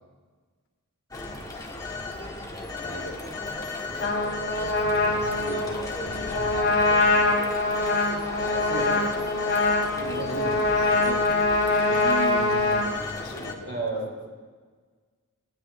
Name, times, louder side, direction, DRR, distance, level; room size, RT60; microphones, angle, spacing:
Telephone, 1.1-13.5, left 3 dB, 15° left, 1.6 m, -35 dB
voice 1, 2.8-3.4 3.9-4.3 4.9-7.0 9.9-10.6 10.9-11.3 11.9-13.8, equal, 75° left, 0 dB, 2.6 m, -38 dB
Trumpet, 4.0-12.9, left 2 dB, 55° left, 4.7 m, -24 dB
voice 2, 8.5-9.1 10.0-10.5 13.7-14.1, right 2 dB, 50° right, -3 dB, 5.2 m, -34 dB
20.0 x 18.0 x 3.2 m, 1.5 s
head